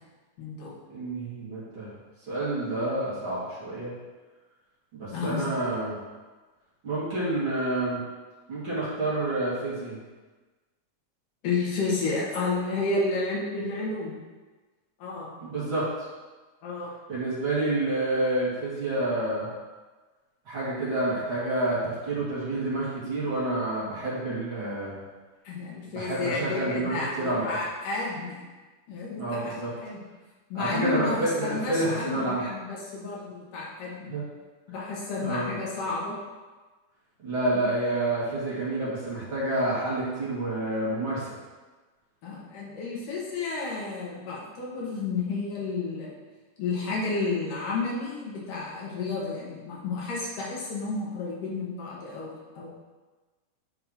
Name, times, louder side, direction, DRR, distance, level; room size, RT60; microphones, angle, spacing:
voice 1, 0.4-0.7 5.1-5.4 11.4-14.2 15.0-15.3 16.6-16.9 25.4-28.4 28.9-29.5 29.8-30.0 30.5-34.1 34.7-36.2 37.5-37.6 42.2-46.1 46.6-52.7, left 3 dB, 90° left, -5 dB, 3.3 m, -31 dB
voice 2, 0.9-1.9 2.3-3.9 4.9-6.0 6.8-8.0 8.5-10.0 15.4-15.9 17.1-19.5 20.5-25.0 25.9-27.6 29.2-29.7 30.5-32.4 34.1-34.3 35.2-35.5 37.2-41.2, right 2 dB, 45° right, -9 dB, 2.8 m, -28 dB
10.5 x 5.6 x 3.0 m, 1.3 s
omnidirectional pair, 3.6 m